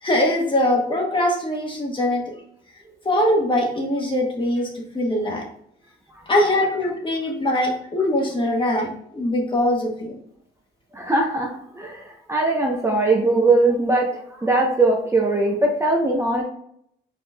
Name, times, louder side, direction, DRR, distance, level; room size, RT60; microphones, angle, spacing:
voice 1, 0.0-2.2 3.0-5.4 6.3-10.2, left 1 dB, 25° left, -1 dB, 1.5 m, -22 dB
voice 2, 10.9-16.4, right 2 dB, 15° right, -1 dB, 0.8 m, -20 dB
4.5 x 4.5 x 2.3 m, 0.71 s
cardioid pair, 90°, 20 cm